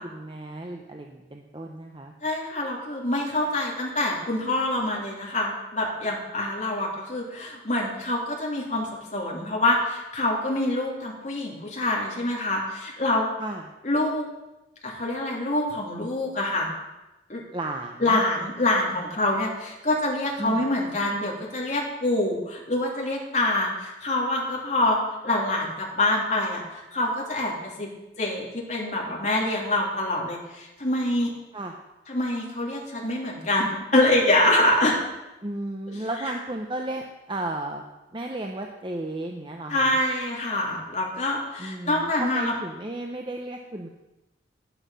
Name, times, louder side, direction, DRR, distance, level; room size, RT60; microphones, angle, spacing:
voice 1, 0.0-2.1 13.4-13.6 17.5-18.2 20.4-20.6 31.5-31.7 35.4-37.8 38.1-40.0 41.6-43.9, right 1 dB, 25° right, 2 dB, 0.7 m, -34 dB
voice 2, 2.2-8.9 9.1-13.3 13.8-14.2 14.8-16.7 17.3-17.4 18.0-25.0 25.2-27.9 28.2-31.3 32.1-35.0 39.7-42.5, left 1 dB, 40° left, -2 dB, 2.8 m, -25 dB
11.5 x 10.0 x 5.5 m, 1.0 s
head